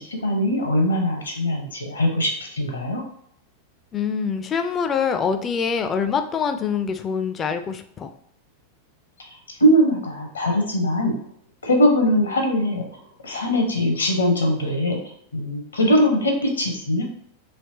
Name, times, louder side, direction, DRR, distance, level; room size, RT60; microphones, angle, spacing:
voice 1, 0.0-3.0 9.5-11.1 11.6-17.0, equal, 75° left, 3 dB, 0.8 m, -21 dB
voice 2, 3.9-8.1, left 6 dB, 25° left, 8 dB, 0.3 m, -25 dB
3.3 x 2.9 x 2.8 m, 0.68 s
figure-of-eight pair, 90°, 0 cm